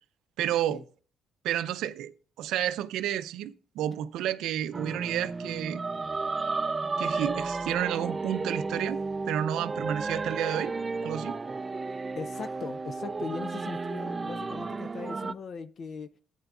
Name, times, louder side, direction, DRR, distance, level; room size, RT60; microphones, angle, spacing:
voice 1, 0.4-0.8 1.4-5.8 7.0-10.7 11.0-11.4, right 11 dB, 85° right, 0.5 m, -31 dB
sound 1, 4.7-15.3, right 3 dB, 30° right, 0.4 m, -33 dB
voice 2, 12.2-16.1, left 5 dB, 55° left, 0.5 m, -39 dB
13.5 x 9.1 x 2.4 m
cardioid pair, 90°, 0 cm